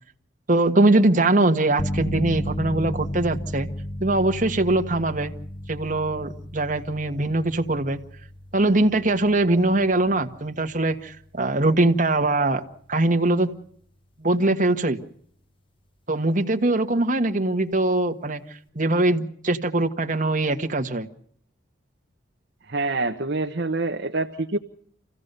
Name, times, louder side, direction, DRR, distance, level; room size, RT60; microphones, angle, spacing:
voice 1, 0.5-3.7 4.0-5.3 5.7-8.0 8.5-12.6 12.9-13.5 14.2-15.0 16.1-18.4 18.7-21.1, right 2 dB, 40° right, 1.5 m, -22 dB
sound 1, 1.8-12.3, equal, 25° left, 1.2 m, -34 dB
voice 2, 22.7-24.6, right 3 dB, 55° right, 1.1 m, -26 dB
27.5 x 16.0 x 6.8 m
head